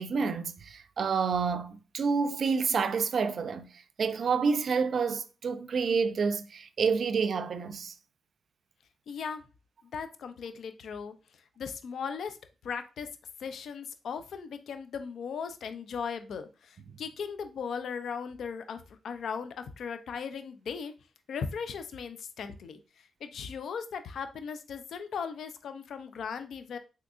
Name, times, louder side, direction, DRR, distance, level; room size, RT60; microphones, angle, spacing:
voice 1, 0.0-3.7 4.0-7.9, right 5 dB, 60° right, 0.3 m, -28 dB
voice 2, 9.1-9.4 9.9-12.4 12.6-13.1 13.4-20.9 21.3-22.8 23.2-26.8, left 6 dB, 75° left, 0.4 m, -38 dB
3.5 x 2.7 x 2.4 m
supercardioid pair, 55°, 0 cm